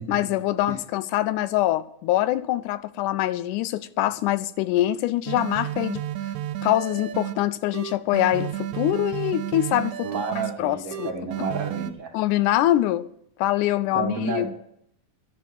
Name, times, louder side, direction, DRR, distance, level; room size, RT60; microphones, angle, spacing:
voice 1, 0.1-6.0 6.6-10.1 10.6-11.1 12.1-13.1 13.4-14.5, left 14 dB, 85° left, 2.1 m, -24 dB
sound 1, 5.3-7.3 7.7-10.5 10.9-11.9, right 11 dB, 75° right, 2.1 m, -32 dB
voice 2, 10.0-12.1 13.9-14.5, right 3 dB, 50° right, 2.4 m, -30 dB
11.5 x 7.2 x 9.6 m
omnidirectional pair, 3.5 m